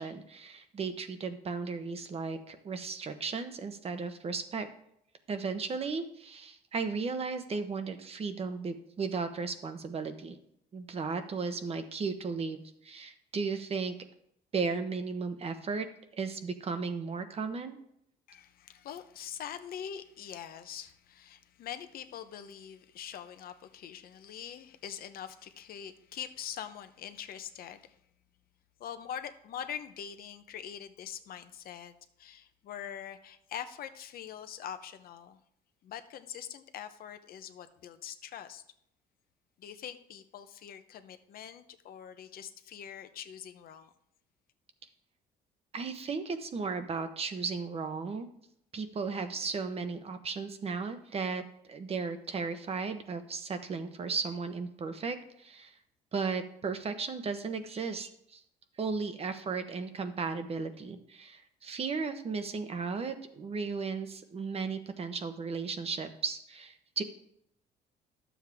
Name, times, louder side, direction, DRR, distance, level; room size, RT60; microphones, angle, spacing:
voice 1, 0.0-4.7 5.3-10.4 10.7-13.9 14.5-15.9 16.2-17.8 45.7-48.3 48.7-51.4 51.7-55.7 56.1-58.4 58.8-67.0, right 4 dB, 35° right, 8 dB, 1.0 m, -35 dB
voice 2, 18.3-28.0 28.8-35.4 35.8-38.6 39.6-43.9, left 9 dB, 60° left, 9 dB, 0.8 m, -43 dB
11.5 x 7.3 x 3.5 m, 0.73 s
cardioid pair, 110°, 17 cm